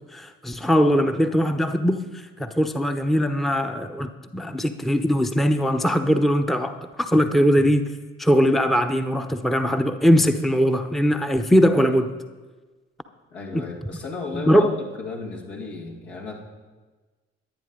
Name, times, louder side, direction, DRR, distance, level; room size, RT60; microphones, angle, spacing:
voice 1, 0.1-12.1 13.5-13.6 14.3-14.7, equal, ahead, 7 dB, 0.9 m, -21 dB
voice 2, 13.3-16.3, left 3 dB, 70° left, -2 dB, 2.4 m, -34 dB
22.5 x 9.2 x 3.8 m, 1.3 s
figure-of-eight pair, 40°, 35 cm